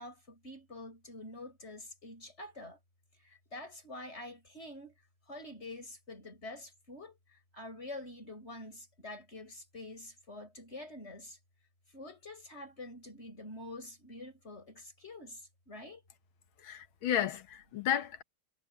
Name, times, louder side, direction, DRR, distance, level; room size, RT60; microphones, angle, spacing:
voice 1, 0.0-2.8 3.2-5.0 5.3-11.4 11.9-16.0, left 2 dB, 30° left, 6.9 m, -47 dB
voice 2, 16.6-18.2, left 10 dB, 70° left, 2.0 m, -32 dB
omnidirectional pair, 2.4 m